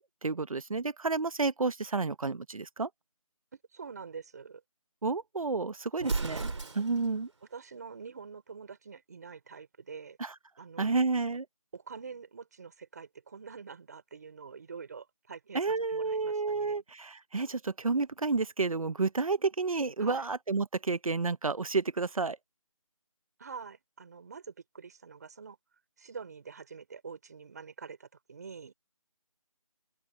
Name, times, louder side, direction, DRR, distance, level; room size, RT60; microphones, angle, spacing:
voice 1, 0.2-2.9 5.0-7.3 10.2-10.3 10.8-11.4 15.5-22.4, right 4 dB, 70° right, 1.1 m, -30 dB
voice 2, 3.5-4.6 6.0-6.2 7.5-10.2 10.6-11.0 11.7-15.6 15.9-16.8 20.0-20.3 23.4-25.6 26.0-28.7, right 5 dB, 30° right, 5.6 m, -46 dB
Explosion, 6.0-7.1, right 3 dB, 55° right, 3.2 m, -34 dB
open air
figure-of-eight pair, 175°, 18 cm